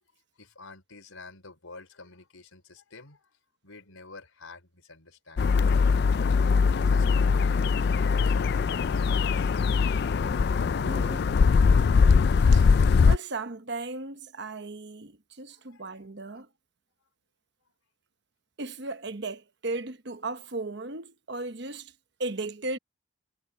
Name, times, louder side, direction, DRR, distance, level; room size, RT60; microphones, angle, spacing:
voice 1, 0.4-3.4 3.6-5.8 6.8-9.5 15.5-16.0 16.3-16.4, left 3 dB, 90° left, 5.2 m, -49 dB
sound 1, 5.4-13.2, left 5 dB, 50° left, 0.3 m, -21 dB
voice 2, 10.8-11.3 12.5-12.7 13.0-16.5 18.6-21.9 22.2-22.8, right 3 dB, 55° right, 1.1 m, -36 dB
head